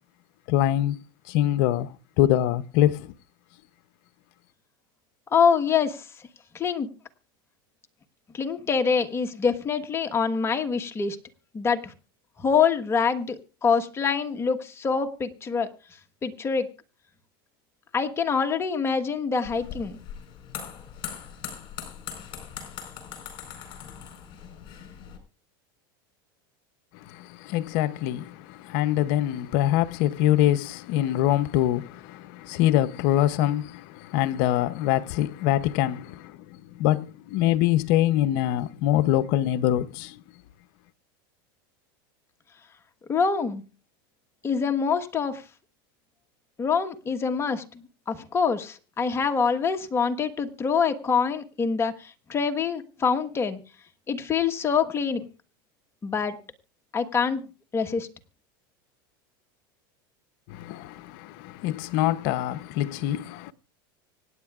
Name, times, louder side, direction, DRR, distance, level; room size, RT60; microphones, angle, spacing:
voice 1, 0.5-1.0 1.3-1.9 2.2-3.1 27.1-36.3 36.7-37.1 37.3-40.1 60.5-63.5, left 13 dB, 60° left, 0.7 m, -24 dB
voice 2, 5.3-6.1 6.5-6.9 8.3-11.2 11.5-11.9 12.4-15.7 16.2-16.7 17.9-20.0 43.1-43.6 44.4-45.4 46.6-53.6 54.1-55.3 56.0-56.4 56.9-57.4 57.7-58.1, left 6 dB, 20° left, 1.3 m, -25 dB
sound 1, 19.4-25.2, left 8 dB, 45° left, 4.2 m, -40 dB
25.0 x 9.4 x 2.4 m
supercardioid pair, 120°, 12 cm